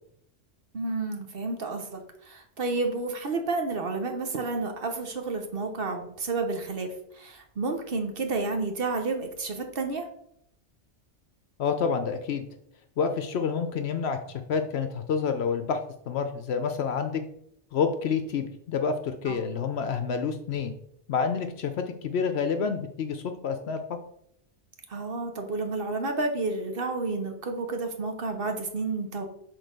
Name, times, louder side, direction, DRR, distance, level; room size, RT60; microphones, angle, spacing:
voice 1, 0.7-10.1 19.3-19.4 24.9-29.2, right 3 dB, 55° right, 5 dB, 1.1 m, -31 dB
voice 2, 11.6-12.5 13.0-14.2 14.5-15.8 16.1-17.2 17.7-20.7 21.1-23.8, left 6 dB, 70° left, 7 dB, 0.9 m, -28 dB
6.4 x 3.9 x 5.2 m, 0.71 s
omnidirectional pair, 1.2 m